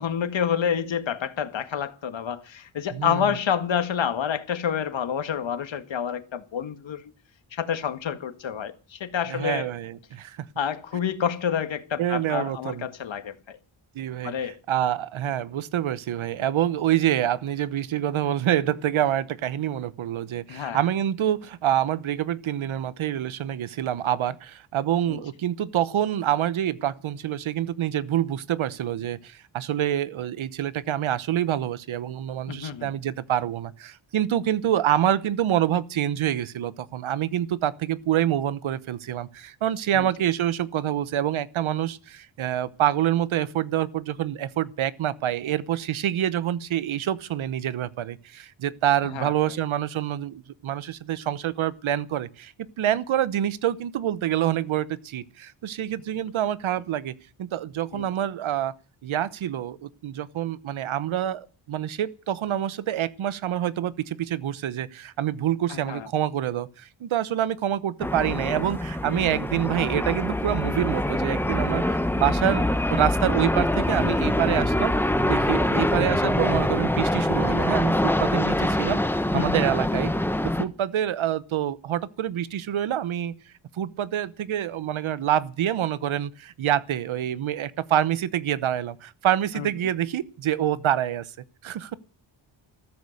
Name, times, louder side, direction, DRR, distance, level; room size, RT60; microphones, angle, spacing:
voice 1, 0.0-7.0 7.5-9.7 10.6-13.6 14.2-14.6 20.5-20.8 25.1-25.2 32.5-32.9 39.9-40.1 49.0-49.3 57.9-58.1 65.7-66.1 79.3-79.6 89.6-89.7, left 8 dB, 70° left, 1.9 m, -28 dB
voice 2, 2.9-3.3 9.3-10.5 12.0-12.9 13.9-57.1 57.4-58.7 59.0-74.9 75.2-79.0 79.3-80.1 80.6-83.3 83.7-91.3 91.6-91.9, right 11 dB, 85° right, 1.1 m, -26 dB
sound 1, 68.0-80.6, left 1 dB, 5° left, 1.2 m, -24 dB
14.5 x 14.0 x 6.6 m
wide cardioid pair, 100°, 47 cm